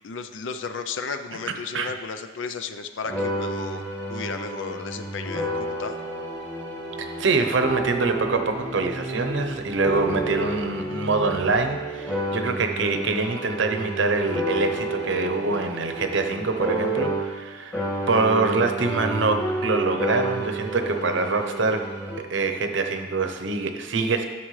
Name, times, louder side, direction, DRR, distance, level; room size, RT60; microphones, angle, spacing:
voice 1, 0.0-3.8 4.1-5.9, left 5 dB, 75° left, 8 dB, 0.5 m, -34 dB
sound 1, 3.0-17.5 17.7-22.2, right 1 dB, 15° left, 1.8 m, -30 dB
voice 2, 7.2-17.8 18.1-21.8 22.2-24.2, right 3 dB, 70° right, 6 dB, 0.8 m, -24 dB
11.5 x 6.0 x 3.2 m, 1.3 s
head